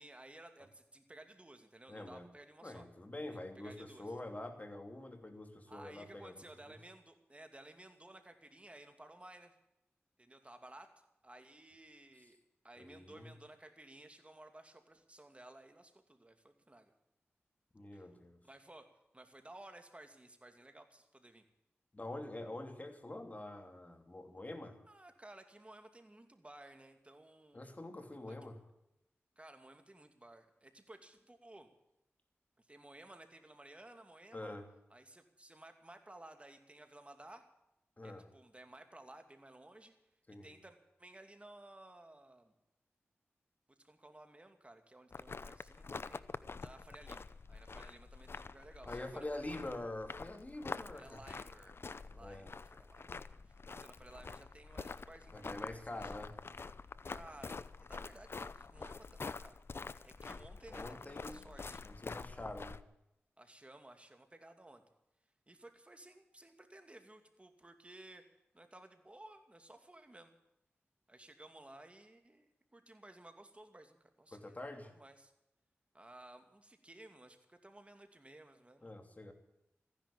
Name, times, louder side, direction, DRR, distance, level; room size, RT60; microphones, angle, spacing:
voice 1, 0.0-2.9 3.6-4.1 5.7-9.5 10.2-10.9 11.2-12.4 12.6-16.9 17.9-18.0 18.4-18.9 19.1-21.4 24.9-27.8 28.3-28.4 29.4-31.7 32.6-34.6 34.9-37.4 38.0-39.9 40.4-42.5 43.8-46.2 46.6-49.5 50.9-53.1 53.5-56.2 57.1-59.6 60.0-61.8 63.4-64.8 65.5-68.2 68.5-70.3 71.1-75.3 75.9-78.9, right 1 dB, 25° right, 6 dB, 2.6 m, -56 dB
voice 2, 1.9-2.3 2.6-6.8 12.8-13.3 17.7-18.4 21.9-24.8 27.5-28.6 34.3-34.7 38.0-38.3 40.3-40.5 48.9-51.2 52.2-52.5 55.3-56.4 60.7-61.5 61.8-62.8 74.3-74.9 78.8-79.3, left 1 dB, 35° left, 6 dB, 2.9 m, -46 dB
sound 1, 45.1-62.8, left 4 dB, 55° left, 0.7 m, -47 dB
15.0 x 10.5 x 8.7 m, 0.87 s
cardioid pair, 45°, 5 cm